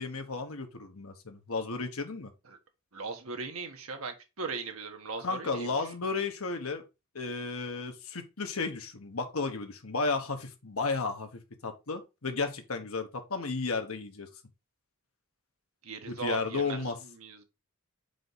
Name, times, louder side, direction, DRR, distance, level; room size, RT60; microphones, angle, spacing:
voice 1, 0.0-2.3 5.2-6.8 7.1-14.3 16.1-17.0, left 4 dB, 85° left, 1.3 m, -33 dB
voice 2, 2.9-5.9 15.8-17.4, right 4 dB, 85° right, 1.4 m, -39 dB
5.0 x 4.8 x 4.0 m
head